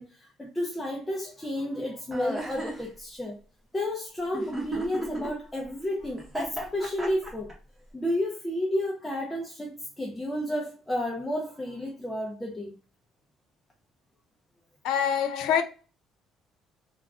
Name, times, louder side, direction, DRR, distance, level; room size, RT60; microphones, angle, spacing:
voice 1, 0.0-3.4 3.7-7.5 7.9-12.7, left 1 dB, 10° left, 0.4 m, -31 dB
sound 1, 2.1-2.8 4.3-5.3 6.2-7.5, right 1 dB, 10° right, 0.7 m, -33 dB
voice 2, 14.8-15.6, left 8 dB, 85° left, 0.3 m, -25 dB
2.3 x 2.0 x 3.4 m
cardioid pair, 175°, 0 cm